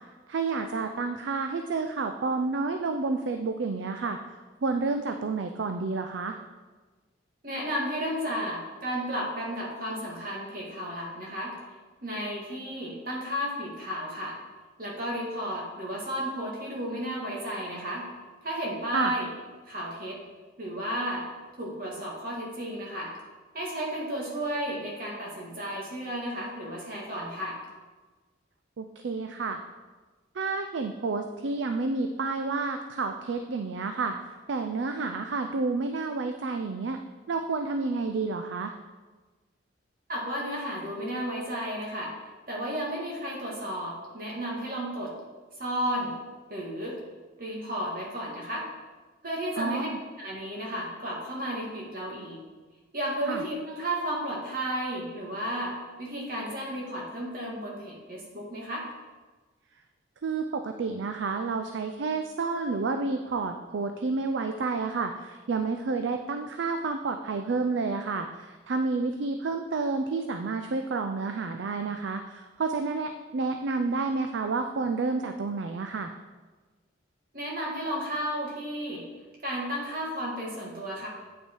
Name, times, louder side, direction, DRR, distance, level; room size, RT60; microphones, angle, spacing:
voice 1, 0.3-4.2 4.6-6.4 18.9-19.1 28.8-29.6 30.3-34.2 34.5-37.0 37.3-38.7 49.6-50.0 53.3-53.4 60.2-76.1, right 4 dB, 70° right, 7 dB, 0.4 m, -30 dB
voice 2, 7.4-11.5 12.0-14.4 14.8-18.1 18.4-19.3 19.7-20.2 20.6-21.3 21.6-23.1 23.5-27.6 40.1-42.1 42.5-45.1 45.6-46.1 46.5-47.0 47.4-48.7 49.2-49.9 50.2-52.4 52.9-58.9 77.3-79.0 79.4-81.1, equal, 50° right, -3 dB, 1.9 m, -33 dB
8.6 x 5.5 x 4.5 m, 1.3 s
head